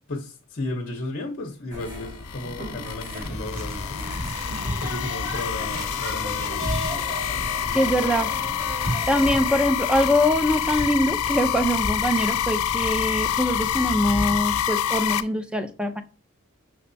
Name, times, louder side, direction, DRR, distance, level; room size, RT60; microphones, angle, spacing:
voice 1, 0.1-4.2 4.8-6.7, left 2 dB, 50° left, 0.8 m, -34 dB
sound 1, 1.7-9.8, equal, 40° right, 2.4 m, -37 dB
sound 2, 1.8-15.2, left 10 dB, 85° left, 0.3 m, -27 dB
sound 3, 3.2-14.6, equal, 70° right, 2.2 m, -34 dB
voice 2, 7.7-8.3 9.1-16.0, equal, 5° right, 0.4 m, -23 dB
6.1 x 3.2 x 2.6 m
head